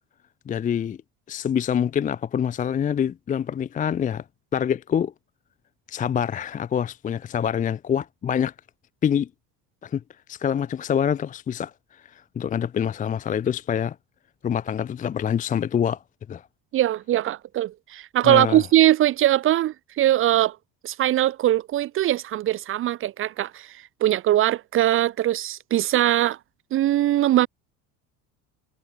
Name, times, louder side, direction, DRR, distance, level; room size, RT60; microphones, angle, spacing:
voice 1, 0.5-1.0 1.3-4.2 4.5-5.1 5.9-8.5 9.0-9.3 9.8-10.0 10.3-11.7 12.1-14.0 14.4-16.0 16.3-16.4 18.2-18.6, left 8 dB, 25° left, 0.5 m, -25 dB
voice 2, 16.7-20.6 20.8-26.4 26.7-27.5, right 13 dB, 35° right, 0.5 m, -21 dB
cardioid pair, 140°, 35 cm